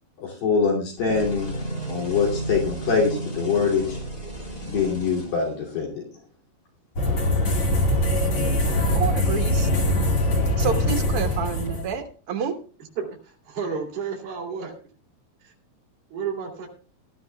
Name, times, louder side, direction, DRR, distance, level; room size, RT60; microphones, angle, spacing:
voice 1, 0.2-1.5 1.9-4.0 4.7-6.0, left 5 dB, 65° left, -1 dB, 4.5 m, -24 dB
sound 1, 1.0-5.9, right 1 dB, 20° left, 1.7 m, -33 dB
sound 2, 7.0-12.0, left 1 dB, 35° left, 2.7 m, -22 dB
voice 2, 8.9-9.7 10.6-12.5, right 6 dB, 70° right, 5 dB, 1.3 m, -28 dB
voice 3, 13.0-14.7 15.4-15.5 16.1-16.7, right 6 dB, 40° right, -1 dB, 3.9 m, -31 dB
19.5 x 12.5 x 2.3 m, 0.40 s
omnidirectional pair, 4.4 m